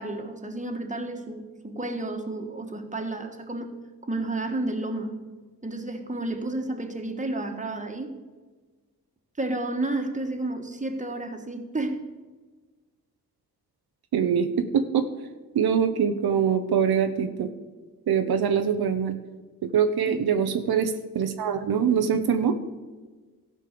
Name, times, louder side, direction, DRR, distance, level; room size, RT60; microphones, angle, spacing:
voice 1, 0.0-3.7 4.0-5.2 5.6-8.1 9.4-12.0 20.1-20.3, right 2 dB, 20° right, 4 dB, 1.5 m, -31 dB
voice 2, 14.1-15.1 15.5-17.5 18.1-19.1 19.6-22.6, right 7 dB, 75° right, 8 dB, 0.8 m, -23 dB
14.0 x 5.3 x 6.7 m, 1.3 s
cardioid pair, 70°, 38 cm